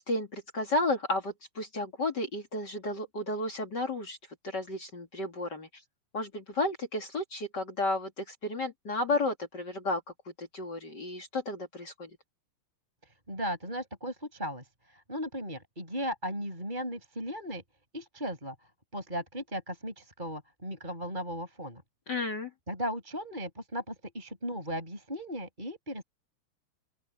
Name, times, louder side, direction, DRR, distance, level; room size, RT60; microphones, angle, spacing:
voice 1, 0.0-4.2 4.4-5.7 6.1-10.0 10.4-12.1 22.1-22.5, left 2 dB, 35° left, 2.0 m, -32 dB
voice 2, 13.0-17.6 17.9-18.5 18.9-21.8 22.7-26.0, equal, 10° right, 7.6 m, -36 dB
open air
omnidirectional pair, 4.7 m